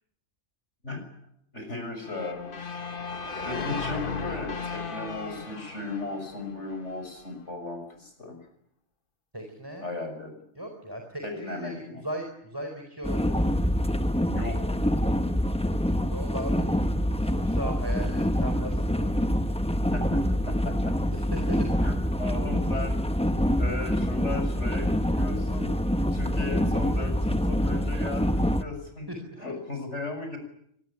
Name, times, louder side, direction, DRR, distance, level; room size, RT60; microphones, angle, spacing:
voice 1, 1.5-2.5 3.4-8.4 9.8-10.3 11.2-11.9 14.3-14.7 19.9-20.2 20.4-20.9 21.8-23.0 23.3-25.7 26.1-29.1 29.4-30.4, left 2 dB, 85° left, 5 dB, 6.8 m, -36 dB
sound 1, 2.0-7.1, left 4 dB, 50° left, 1.7 m, -36 dB
voice 2, 9.3-9.9 10.5-13.5 16.1-16.9 17.2-19.5 21.1-21.7 22.1-22.2 29.1-29.5, right 1 dB, 20° right, 4 dB, 4.3 m, -38 dB
sound 2, 13.0-28.6, equal, 5° left, 1.0 m, -26 dB
24.5 x 21.0 x 9.9 m, 0.71 s
omnidirectional pair, 1.2 m